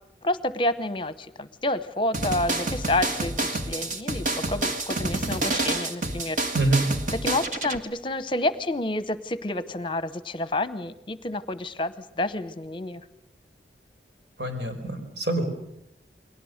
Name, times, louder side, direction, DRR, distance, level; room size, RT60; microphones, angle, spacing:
voice 1, 0.2-6.4 7.1-13.0, left 1 dB, 30° left, 13 dB, 0.8 m, -29 dB
sound 1, 2.1-7.8, right 2 dB, 45° right, 1.8 m, -28 dB
voice 2, 6.5-6.9 14.4-15.4, right 2 dB, 75° right, 5 dB, 4.9 m, -25 dB
29.5 x 22.0 x 6.5 m, 0.81 s
head